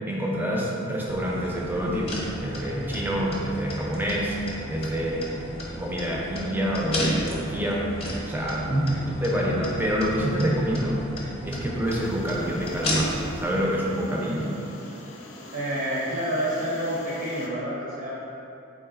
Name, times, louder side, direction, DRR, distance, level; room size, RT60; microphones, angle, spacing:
voice 1, 0.1-4.4 4.7-8.0 8.3-8.8 9.2-11.0 11.4-14.5, equal, 10° right, -3 dB, 0.4 m, -27 dB
sound 1, 1.1-13.5, equal, 30° left, 0.6 m, -34 dB
voice 2, 8.6-9.1 15.5-18.2, equal, 70° right, -7 dB, 0.6 m, -29 dB
sound 2, 11.8-17.5, left 1 dB, 70° left, 0.4 m, -44 dB
3.8 x 3.3 x 2.3 m, 2.7 s
head